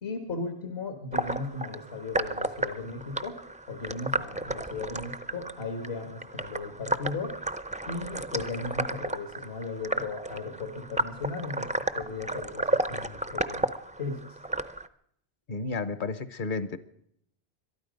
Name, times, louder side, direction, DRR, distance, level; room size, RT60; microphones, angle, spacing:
voice 1, 0.0-3.4 3.7-7.3 7.9-11.7 11.9-13.7 14.0-14.4, left 3 dB, 75° left, 6 dB, 1.8 m, -36 dB
sound 1, 1.1-14.9, right 1 dB, 10° right, 0.3 m, -33 dB
voice 2, 15.5-16.8, left 3 dB, 55° left, 14 dB, 1.0 m, -32 dB
22.5 x 12.5 x 5.2 m, 0.69 s
omnidirectional pair, 1.1 m